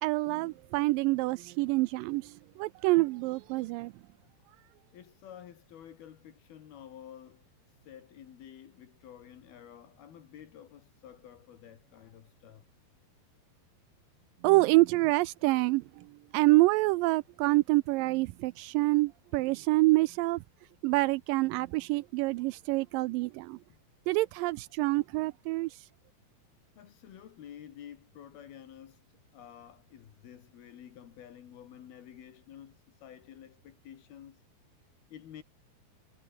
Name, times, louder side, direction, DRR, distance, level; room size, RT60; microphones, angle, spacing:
voice 1, 0.0-3.9 14.4-16.0 16.3-20.4 20.8-23.6 24.1-25.7, right 21 dB, 90° right, 1.9 m, -27 dB
voice 2, 4.9-12.6 26.8-34.4 35.1-35.4, left 10 dB, 75° left, 4.0 m, -51 dB
omnidirectional pair, 4.5 m